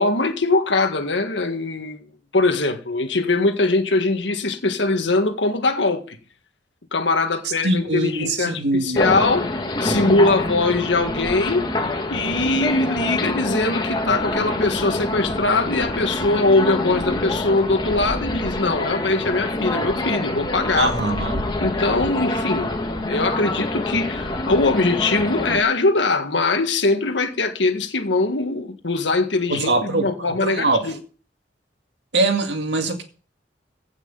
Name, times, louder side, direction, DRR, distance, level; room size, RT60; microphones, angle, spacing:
voice 1, 0.0-2.0 2.3-6.2 6.9-9.5 9.8-20.9 21.6-31.0, left 3 dB, 85° left, 1.7 m, -21 dB
voice 2, 7.6-9.2 20.7-21.4 29.5-30.9 32.1-33.0, right 2 dB, 70° right, 2.2 m, -23 dB
sound 1, 9.0-25.6, left 1 dB, 25° left, 1.7 m, -26 dB
15.5 x 6.2 x 5.5 m
head